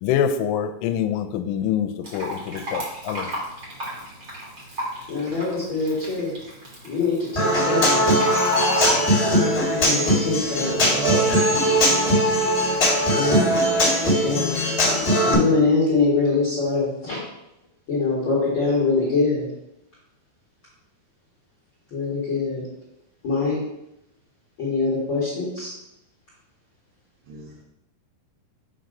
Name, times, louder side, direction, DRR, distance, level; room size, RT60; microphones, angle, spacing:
voice 1, 0.0-3.3, left 9 dB, 85° left, 7 dB, 2.6 m, -25 dB
Fill (with liquid), 2.0-9.0, equal, 45° right, 1.6 m, -32 dB
voice 2, 5.1-6.3 6.8-8.1 9.7-10.9 13.1-13.5 14.2-14.6 15.2-17.2 17.9-19.5 21.9-22.6 23.2-23.6 24.6-25.7, left 4 dB, 45° left, -7 dB, 1.6 m, -23 dB
Human voice / Acoustic guitar, 7.4-15.3, equal, 25° left, 1.4 m, -20 dB
voice 3, 10.3-12.0 27.3-27.6, right 4 dB, 80° right, -5 dB, 3.1 m, -31 dB
7.7 x 2.6 x 5.3 m, 0.85 s
omnidirectional pair, 4.8 m